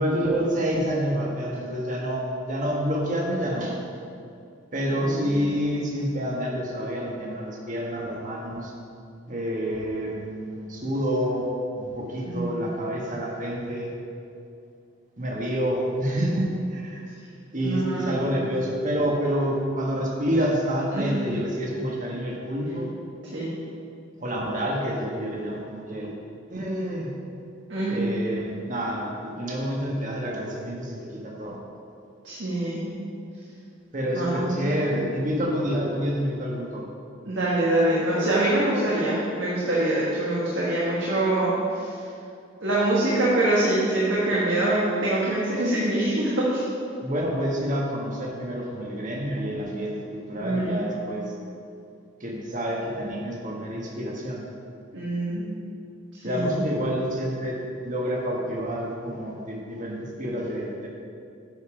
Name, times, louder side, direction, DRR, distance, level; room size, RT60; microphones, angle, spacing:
voice 1, 0.0-3.8 4.7-8.7 9.3-11.5 11.8-13.9 15.2-17.1 17.5-22.9 24.2-26.1 26.5-27.1 27.9-31.6 33.9-36.8 47.0-51.3 52.2-54.5 56.2-60.9, equal, 40° right, -2 dB, 1.4 m, -28 dB
voice 2, 4.9-5.3 12.3-12.7 17.6-18.2 20.9-21.2 23.3-23.5 27.7-28.0 32.2-32.9 34.1-34.8 37.2-42.0 42.6-46.6 50.4-50.9 54.9-55.6 56.2-56.6, right 1 dB, 70° right, -7 dB, 1.5 m, -25 dB
9.5 x 5.4 x 5.0 m, 2.5 s
head